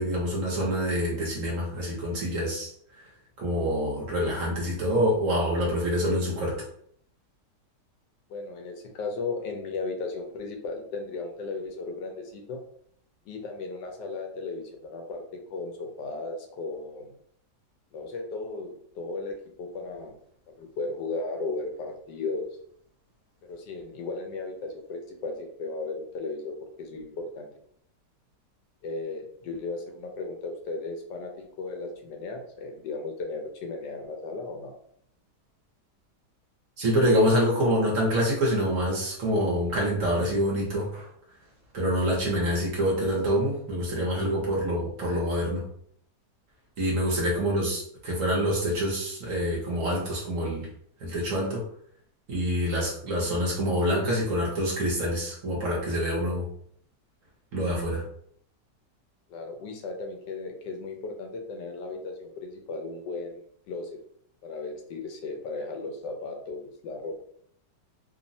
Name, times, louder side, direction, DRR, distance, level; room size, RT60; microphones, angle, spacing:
voice 1, 0.0-2.7 3.4-6.5 36.8-41.1 41.7-45.6 46.8-50.7 51.0-51.6 52.3-56.5 57.5-58.0, equal, 60° right, -4 dB, 1.0 m, -26 dB
voice 2, 8.3-12.6 13.3-17.1 17.9-20.1 20.6-22.5 23.4-27.5 28.8-34.7 47.3-47.5 59.3-64.0 64.4-67.2, left 3 dB, 80° left, 3 dB, 1.2 m, -36 dB
3.1 x 2.0 x 2.6 m, 0.65 s
omnidirectional pair, 1.9 m